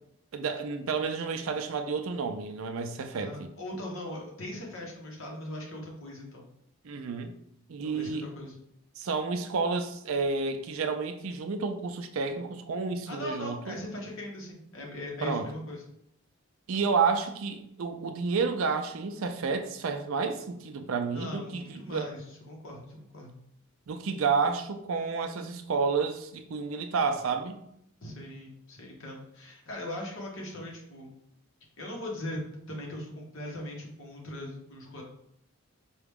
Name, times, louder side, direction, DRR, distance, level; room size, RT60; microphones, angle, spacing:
voice 1, 0.3-3.5 6.8-7.3 7.7-8.2 9.0-13.8 15.2-15.5 16.7-22.1 23.9-27.6, right 5 dB, 70° right, 0.4 m, -30 dB
voice 2, 3.1-6.5 7.8-8.6 13.1-15.8 21.1-23.3 28.0-31.1 31.8-32.4 32.7-35.0, left 1 dB, 65° left, 1.1 m, -40 dB
4.7 x 2.3 x 3.5 m
head